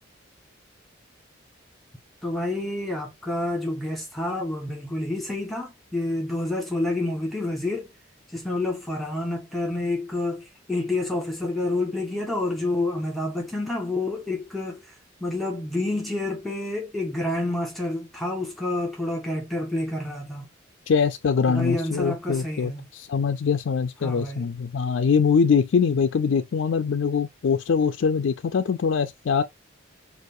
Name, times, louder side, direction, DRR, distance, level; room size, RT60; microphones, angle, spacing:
voice 1, 2.2-7.9 8.3-20.5 21.5-22.9 24.0-24.5, left 2 dB, ahead, 1.4 m, -28 dB
voice 2, 20.9-29.4, left 6 dB, 65° left, 0.4 m, -23 dB
6.4 x 2.5 x 2.6 m
head